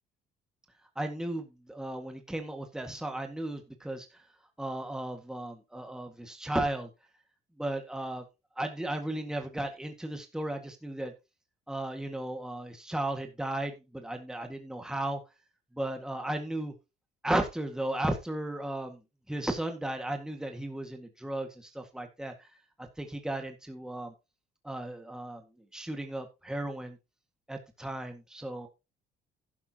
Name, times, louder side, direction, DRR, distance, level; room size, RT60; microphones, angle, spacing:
voice 1, 1.0-4.1 4.6-6.9 7.6-8.2 8.6-11.1 11.7-15.2 15.7-16.7 17.2-19.0 19.3-22.5 23.0-24.1 24.6-25.4 25.7-27.0 27.5-28.7, right 1 dB, 5° right, 1.9 m, -35 dB
11.5 x 11.0 x 2.9 m
cardioid pair, 110°, 17 cm